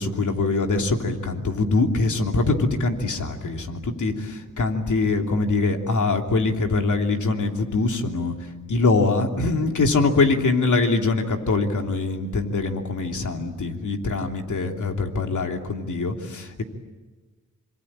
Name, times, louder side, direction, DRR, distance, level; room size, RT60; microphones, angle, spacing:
voice 1, 0.0-16.6, left 3 dB, 65° left, 3 dB, 3.0 m, -23 dB
26.0 x 24.0 x 8.8 m, 1.3 s
cardioid pair, 65°, 32 cm